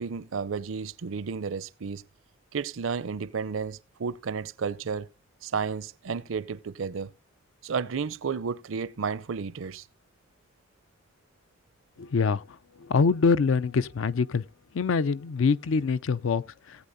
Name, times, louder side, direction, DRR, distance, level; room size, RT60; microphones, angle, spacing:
voice 1, 0.0-2.0 2.5-5.1 5.4-7.1 7.6-9.8, right 5 dB, 70° right, 0.5 m, -32 dB
voice 2, 12.0-12.4 12.9-14.4 14.7-16.4, left 5 dB, 70° left, 0.4 m, -24 dB
18.0 x 8.4 x 2.6 m
head